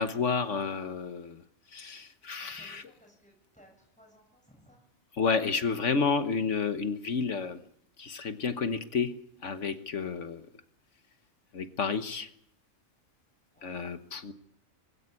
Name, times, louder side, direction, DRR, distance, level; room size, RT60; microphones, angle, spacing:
voice 1, 0.0-1.4 1.7-2.8 5.2-7.6 8.0-9.1 9.4-10.4 11.5-12.3 13.6-14.3, left 5 dB, 60° left, 9 dB, 1.5 m, -30 dB
voice 2, 2.4-4.8 10.3-10.4 13.5-13.8, equal, 5° left, 1 dB, 7.8 m, -59 dB
21.5 x 15.5 x 9.7 m, 0.71 s
omnidirectional pair, 1.4 m